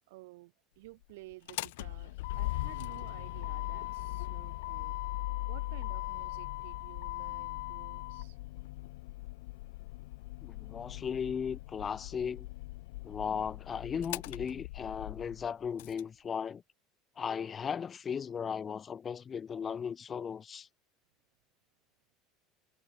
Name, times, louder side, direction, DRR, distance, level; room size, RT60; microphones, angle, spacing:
voice 1, 0.1-5.0 5.5-8.4, right 21 dB, 75° right, 2.3 m, -53 dB
Motor vehicle (road), 1.3-16.0, left 20 dB, 75° left, 1.8 m, -39 dB
voice 2, 10.4-12.5 13.0-16.6 17.2-20.7, left 7 dB, 35° left, 1.8 m, -36 dB
hypercardioid pair, 80°, 0 cm